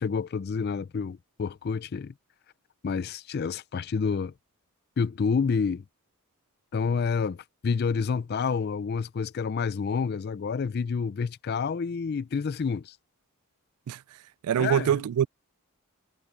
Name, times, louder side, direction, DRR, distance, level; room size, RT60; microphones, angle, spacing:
voice 1, 0.0-2.1 2.8-4.3 5.0-5.8 6.7-13.0 14.6-15.0, left 5 dB, 45° left, 0.4 m, -29 dB
voice 2, 14.4-15.3, right 9 dB, 80° right, 0.3 m, -24 dB
head